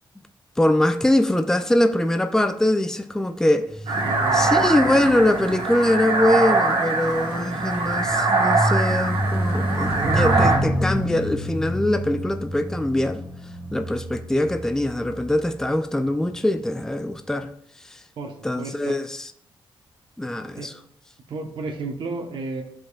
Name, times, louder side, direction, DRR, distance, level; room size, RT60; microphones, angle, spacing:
voice 1, 0.6-3.6 4.3-13.2 13.7-17.5 17.9-18.0 18.4-19.3 20.2-20.7, left 1 dB, 5° left, 0.5 m, -22 dB
sound 1, 3.7-15.3 16.1-16.4, equal, 15° right, 2.0 m, -28 dB
sound 2, 3.9-10.6, right 3 dB, 80° right, 1.5 m, -23 dB
voice 2, 4.0-5.1 18.2-19.0 20.6-20.7 21.3-22.6, right 3 dB, 65° right, 1.2 m, -33 dB
12.5 x 5.1 x 2.5 m
cardioid pair, 100°, 9 cm